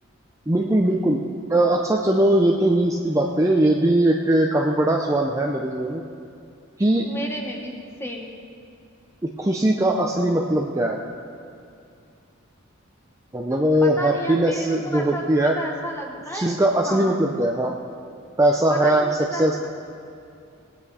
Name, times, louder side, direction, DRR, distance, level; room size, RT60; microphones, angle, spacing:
voice 1, 0.5-1.2 1.5-6.0 6.8-7.1 9.2-11.0 13.3-15.6 16.3-17.7 18.4-19.6, right 1 dB, 15° right, 0 dB, 0.6 m, -20 dB
voice 2, 7.0-7.7 8.0-8.3 13.8-16.6 16.8-17.2 18.7-19.6, equal, 10° left, 1 dB, 1.3 m, -33 dB
19.5 x 8.8 x 4.2 m, 2.5 s
head